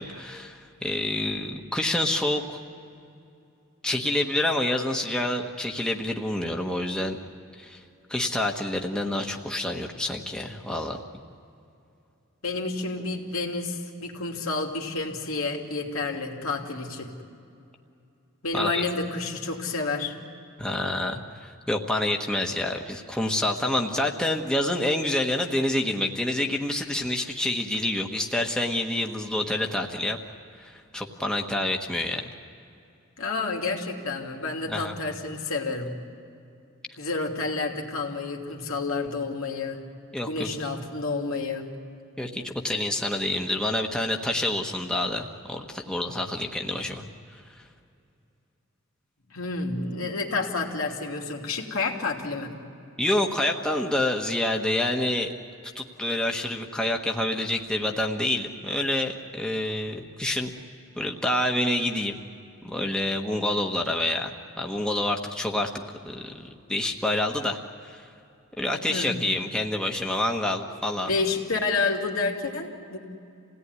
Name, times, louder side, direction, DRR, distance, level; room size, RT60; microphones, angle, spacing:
voice 1, 0.0-2.6 3.8-7.2 7.6-7.8 8.1-11.0 18.5-18.8 20.6-30.2 30.6-32.3 34.7-34.9 40.1-40.5 42.2-47.1 47.5-47.6 53.0-55.3 55.7-60.5 61.0-62.2 62.6-65.7 66.0-68.1 68.6-71.1, left 1 dB, 5° left, 1 dB, 1.3 m, -27 dB
voice 2, 12.4-17.1 18.4-20.2 33.2-35.9 37.0-39.8 40.2-41.7 49.3-52.6 68.9-69.2 71.0-73.0, left 3 dB, 85° left, 0 dB, 2.9 m, -29 dB
27.5 x 17.5 x 9.7 m, 2.6 s
head